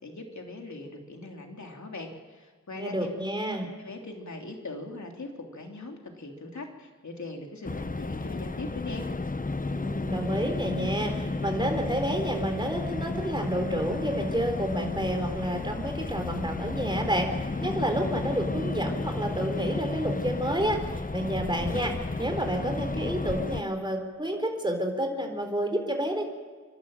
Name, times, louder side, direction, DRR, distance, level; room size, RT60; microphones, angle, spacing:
voice 1, 0.0-3.1 3.8-9.1, left 2 dB, 70° left, 2 dB, 3.3 m, -40 dB
voice 2, 2.8-3.7 9.6-21.9 22.2-26.3, right 1 dB, 15° right, 4 dB, 3.9 m, -30 dB
sound 1, 7.6-23.6, left 3 dB, 30° left, 0.9 m, -32 dB
27.0 x 12.0 x 8.9 m, 1.5 s
wide cardioid pair, 50°, 30 cm